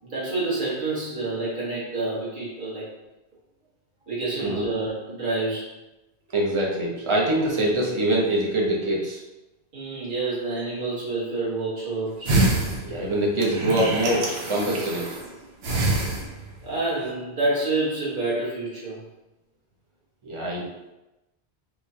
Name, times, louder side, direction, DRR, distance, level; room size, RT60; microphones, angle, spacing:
voice 1, 0.0-2.9 4.1-5.7 9.7-12.4 16.0-16.1 16.6-19.0, right 2 dB, 50° right, -9 dB, 1.5 m, -28 dB
voice 2, 6.3-9.2 12.8-15.1 20.2-20.6, right 1 dB, 30° right, -3 dB, 0.7 m, -24 dB
sound 1, 12.3-15.3 15.6-16.7 17.0-17.1, right 2 dB, 75° right, 0.9 m, -26 dB
4.7 x 2.3 x 2.7 m, 1.0 s
omnidirectional pair, 1.1 m